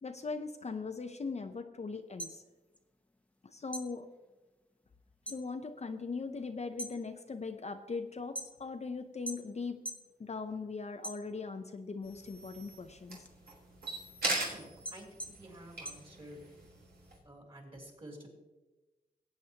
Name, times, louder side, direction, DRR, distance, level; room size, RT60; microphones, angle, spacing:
voice 1, 0.0-2.4 3.4-4.1 5.3-9.8 10.2-13.3, left 4 dB, 40° left, 6 dB, 0.6 m, -40 dB
sound 1, 2.0-3.4 3.7-5.5 5.8-6.3 6.6-8.8 9.3-10.1 10.5-11.7 12.1-16.7, right 1 dB, 10° left, 0.9 m, -45 dB
sound 2, 12.0-17.2, right 2 dB, 65° right, 3.0 m, -40 dB
voice 2, 14.5-16.4 17.2-18.3, right 1 dB, 30° right, -1 dB, 3.4 m, -51 dB
18.0 x 8.4 x 2.9 m, 1.1 s
cardioid pair, 75°, 17 cm